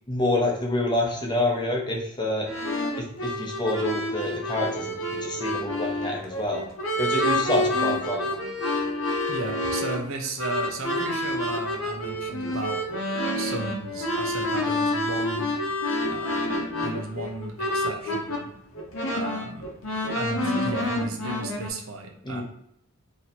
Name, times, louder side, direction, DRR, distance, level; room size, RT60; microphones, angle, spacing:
voice 1, 0.1-2.5 3.0-6.6 7.0-8.3 22.2-22.4, left 1 dB, 20° left, -1 dB, 0.7 m, -27 dB
sound 1, 2.5-18.4 18.7-21.7, left 1 dB, 65° left, 0.8 m, -28 dB
voice 2, 9.3-12.8 13.3-15.6 16.1-18.5 19.1-19.7 20.1-22.4, right 3 dB, 70° right, 3 dB, 0.6 m, -34 dB
3.0 x 2.7 x 4.2 m, 0.74 s
head